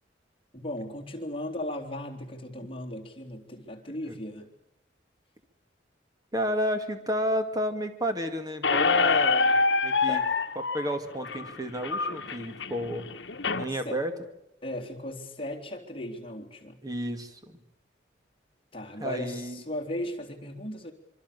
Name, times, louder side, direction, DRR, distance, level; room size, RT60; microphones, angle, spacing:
voice 1, 0.5-4.5 10.1-10.2 13.9-14.0 14.6-16.8 18.7-20.9, left 1 dB, 30° left, 0 dB, 3.6 m, -36 dB
voice 2, 6.3-9.6 9.8-10.2 10.6-13.1 13.5-14.1 16.8-17.6 19.0-19.6, equal, 20° right, 7 dB, 2.4 m, -31 dB
Squeak, 8.6-13.6, left 4 dB, 70° left, 1.3 m, -26 dB
26.5 x 24.0 x 6.9 m, 0.81 s
head